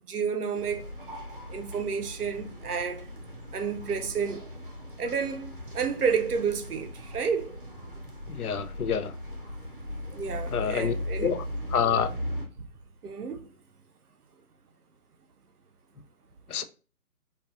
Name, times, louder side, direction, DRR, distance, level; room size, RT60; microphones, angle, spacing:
voice 1, 0.0-0.9 1.5-3.1 3.5-4.5 5.0-7.6 10.1-11.3 13.0-13.4, right 6 dB, 85° right, 0.7 m, -30 dB
sound 1, 0.5-12.5, left 1 dB, 35° right, 0.6 m, -38 dB
voice 2, 8.3-9.1 10.5-10.9 11.2-11.4 11.7-12.1 16.5-16.6, left 7 dB, 75° left, 0.6 m, -27 dB
4.4 x 2.3 x 2.4 m
hypercardioid pair, 170°, 45 cm